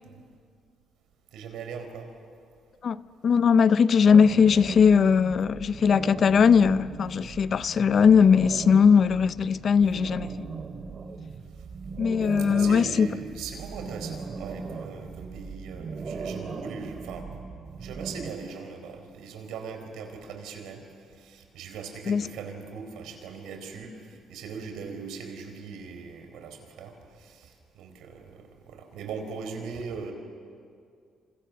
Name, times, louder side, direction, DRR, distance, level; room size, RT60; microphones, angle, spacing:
voice 1, 1.3-2.0 12.4-17.2 17.8-20.8 21.2-23.9 24.3-26.9 27.2-27.4 27.8-28.2 28.7-30.1, right 5 dB, 90° right, 4.3 m, -39 dB
voice 2, 3.2-10.3 12.0-13.1 22.1-22.3, left 6 dB, 45° left, 0.6 m, -20 dB
sound 1, 4.0-18.3, right 4 dB, 40° right, 2.2 m, -38 dB
28.0 x 27.5 x 6.8 m
cardioid pair, 130°, 0 cm